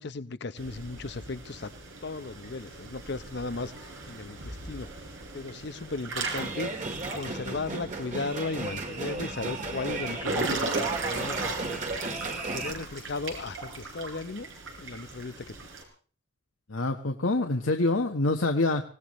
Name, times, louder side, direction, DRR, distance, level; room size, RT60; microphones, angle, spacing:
voice 1, 0.0-1.7 2.0-4.9 5.3-6.7 7.1-11.8 12.5-14.5 14.8-15.6, left 3 dB, 60° left, 13 dB, 0.8 m, -36 dB
Water / Splash splatter / Drip, 0.6-15.8, right 3 dB, 90° right, 4.9 m, -38 dB
sound 1, 6.3-12.7, right 3 dB, 40° right, 2.1 m, -35 dB
voice 2, 16.7-18.9, left 2 dB, 85° left, 3 dB, 1.3 m, -26 dB
25.0 x 18.0 x 3.2 m, 0.41 s
head